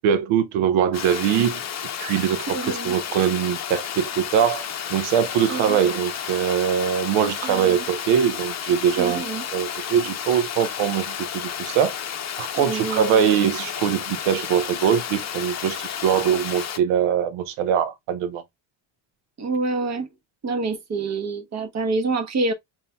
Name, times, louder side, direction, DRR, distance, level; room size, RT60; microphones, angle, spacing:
voice 1, 0.0-1.6 2.0-9.2 9.5-11.9 12.4-18.4, right 8 dB, 80° right, 0.7 m, -22 dB
Water, 0.9-16.8, left 8 dB, 35° left, 0.7 m, -32 dB
voice 2, 2.5-2.9 5.5-5.8 7.4-7.8 9.0-9.4 12.6-13.3 19.4-20.1 20.4-22.5, right 3 dB, 35° right, 1.1 m, -27 dB
5.4 x 2.7 x 2.2 m
cardioid pair, 145°, 48 cm